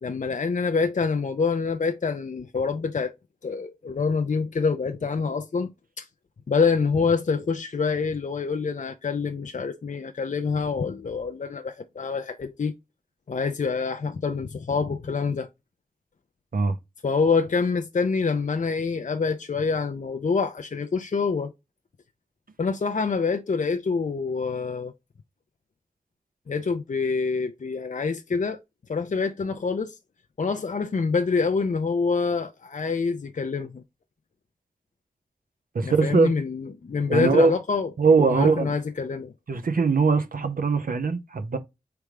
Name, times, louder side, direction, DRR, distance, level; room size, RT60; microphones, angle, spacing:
voice 1, 0.0-3.1 3.4-5.7 6.0-6.1 6.5-12.7 13.3-15.5 17.0-21.5 22.6-24.9 26.5-28.6 28.9-30.0 30.4-33.8 35.8-37.9 38.3-39.3, left 5 dB, 60° left, 0.5 m, -26 dB
voice 2, 35.7-36.3 37.1-37.5 38.0-38.7 39.5-41.6, right 4 dB, 85° right, 0.6 m, -21 dB
3.4 x 3.0 x 4.8 m
wide cardioid pair, 60°, 14 cm